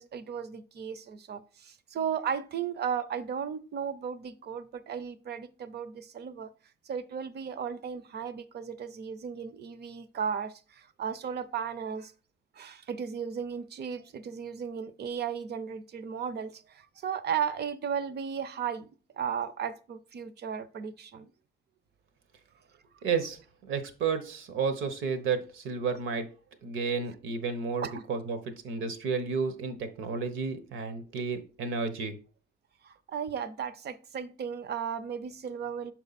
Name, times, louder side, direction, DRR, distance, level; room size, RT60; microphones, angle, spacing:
voice 1, 0.0-6.5 6.8-12.1 12.5-21.3 22.9-23.0 27.8-28.1 32.8-35.9, right 7 dB, 55° right, 0.6 m, -35 dB
voice 2, 23.0-23.4 23.7-26.3 26.6-32.2, right 5 dB, 80° right, 1.0 m, -32 dB
6.5 x 4.4 x 4.1 m
cardioid pair, 90°, 20 cm